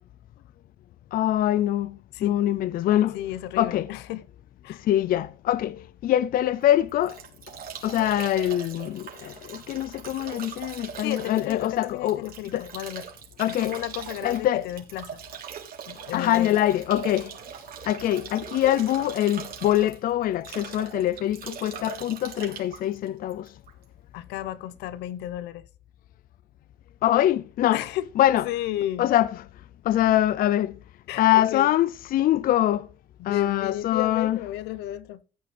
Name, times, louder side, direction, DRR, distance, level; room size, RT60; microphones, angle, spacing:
voice 1, 1.1-3.2 3.6-3.9 4.8-7.2 7.8-12.7 13.4-13.7 14.2-14.7 16.1-17.3 17.9-23.5 27.0-27.8 28.2-28.4 29.0-29.3 29.9-30.8 31.2-32.9 33.3-34.4, left 13 dB, 60° left, 0.5 m, -24 dB
voice 2, 3.1-4.2 4.6-4.8 11.0-13.1 13.5-15.2 15.9-16.6 17.2-17.3 24.1-25.7 27.7-28.1 28.4-29.1 31.1-31.7 33.2-35.2, left 13 dB, 85° left, 0.9 m, -33 dB
Bathtub (filling or washing) / Drip / Trickle dribble, 6.6-23.8, right 8 dB, 60° right, 3.4 m, -41 dB
14.5 x 9.3 x 3.4 m
cardioid pair, 110°, 17 cm